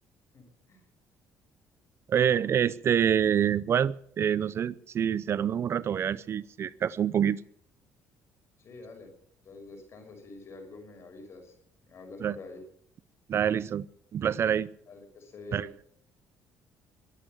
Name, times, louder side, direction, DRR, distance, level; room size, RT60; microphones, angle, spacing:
voice 1, 0.3-0.9 8.6-9.1 9.4-11.5 11.9-12.6 14.9-15.7, left 3 dB, 50° left, 5 dB, 6.1 m, -47 dB
voice 2, 2.1-7.4 12.2-12.4 13.3-13.9 14.1-14.7 15.5-15.7, right 8 dB, 45° right, 19 dB, 0.6 m, -26 dB
22.0 x 8.3 x 7.9 m, 0.65 s
cardioid pair, 105°, 6 cm